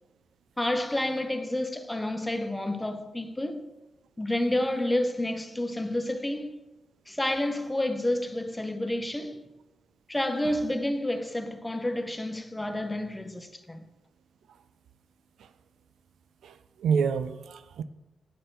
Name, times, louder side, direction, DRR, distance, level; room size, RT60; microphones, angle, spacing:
voice 1, 0.6-3.7 4.2-6.6 7.1-9.4 10.1-13.8, left 1 dB, 15° left, 0.8 m, -29 dB
voice 2, 16.4-17.8, right 6 dB, 85° right, 0.3 m, -28 dB
9.4 x 4.2 x 3.8 m
cardioid pair, 65°, 0 cm